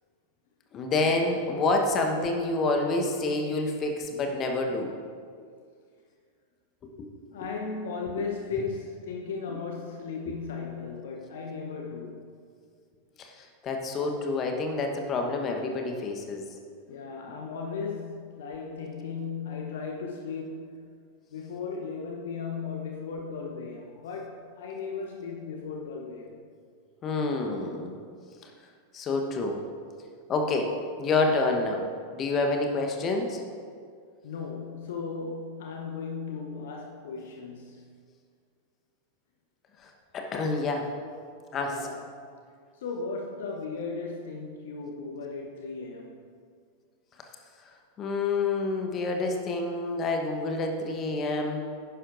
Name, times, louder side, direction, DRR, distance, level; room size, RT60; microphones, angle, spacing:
voice 1, 0.7-4.9 6.8-6.9 13.2-16.4 27.0-28.0 28.4-28.5 28.9-29.6 30.3-31.8 32.1-33.4 39.8-40.9 41.5-41.7 48.0-51.7, left 3 dB, 30° left, 3 dB, 1.1 m, -28 dB
voice 2, 7.3-12.3 16.9-20.9 21.3-26.4 34.2-37.9 41.6-42.3 42.7-46.2, left 4 dB, 60° left, 1 dB, 0.9 m, -36 dB
11.5 x 10.0 x 2.6 m, 2.1 s
figure-of-eight pair, 90°, 0 cm